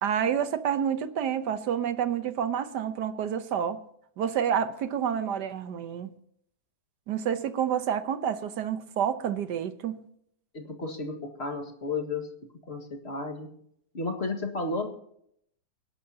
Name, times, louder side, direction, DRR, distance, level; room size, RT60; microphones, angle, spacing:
voice 1, 0.0-3.8 4.2-6.1 7.1-10.0, right 8 dB, 80° right, 1.5 m, -29 dB
voice 2, 10.5-12.3 12.7-13.5 13.9-14.9, left 3 dB, 40° left, 2.0 m, -33 dB
25.0 x 11.0 x 2.8 m
omnidirectional pair, 1.8 m